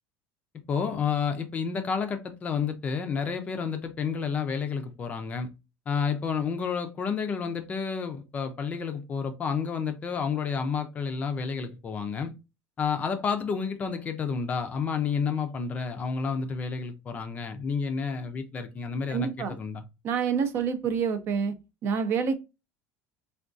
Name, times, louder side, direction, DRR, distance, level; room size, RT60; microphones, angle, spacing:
voice 1, 0.7-5.5 5.9-12.3 12.8-19.8, left 6 dB, 25° left, 0.4 m, -30 dB
voice 2, 19.1-19.6 20.0-21.5 21.8-22.3, right 6 dB, 40° right, 0.4 m, -27 dB
3.5 x 2.3 x 2.4 m
cardioid pair, 150°, 6 cm